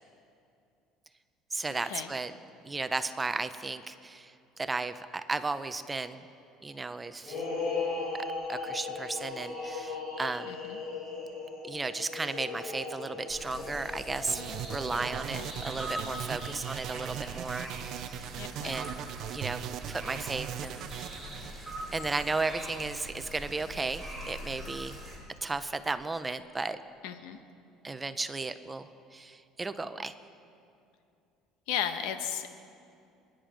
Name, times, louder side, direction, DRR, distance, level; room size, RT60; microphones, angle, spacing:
voice 1, 1.5-2.3 2.6-6.2 6.6-7.4 8.5-10.5 11.6-14.4 14.7-18.2 18.6-19.0 19.3-19.6 19.9-25.0 25.4-26.8 27.8-30.1, right 3 dB, 15° right, 10 dB, 0.7 m, -35 dB
sound 1, 7.2-15.8, left 4 dB, 40° left, 3.5 m, -38 dB
voice 2, 10.5-10.8 15.3-15.5 18.4-18.8 27.0-27.4 31.7-32.5, left 9 dB, 85° left, 8 dB, 1.2 m, -35 dB
sound 2, 13.3-25.2, right 1 dB, 5° left, 4.6 m, -43 dB
sound 3, 14.3-22.4, right 11 dB, 55° right, 0.4 m, -40 dB
26.5 x 10.5 x 5.2 m, 2.6 s
cardioid pair, 130°, 0 cm